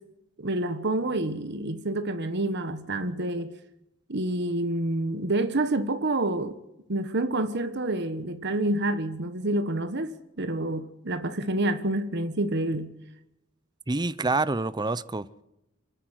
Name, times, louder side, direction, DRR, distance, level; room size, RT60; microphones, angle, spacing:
voice 1, 0.4-3.5 4.1-6.6 6.9-12.9, right 2 dB, 55° right, 1.3 m, -28 dB
voice 2, 13.9-15.4, right 3 dB, 20° right, 0.7 m, -27 dB
28.0 x 10.5 x 9.2 m
head